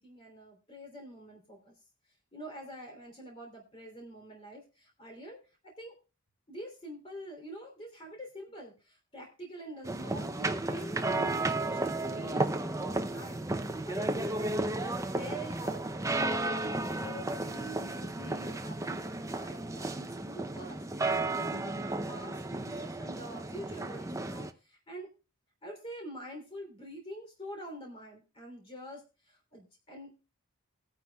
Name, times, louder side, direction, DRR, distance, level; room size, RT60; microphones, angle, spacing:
voice 1, 0.0-1.7 2.3-5.4 5.8-5.9 6.5-16.0 16.5-25.1 25.6-30.1, right 1 dB, 25° left, 1 dB, 3.2 m, -46 dB
sound 1, 9.8-24.5, right 2 dB, 15° right, 0.6 m, -33 dB
20.5 x 9.6 x 2.3 m, 0.32 s
head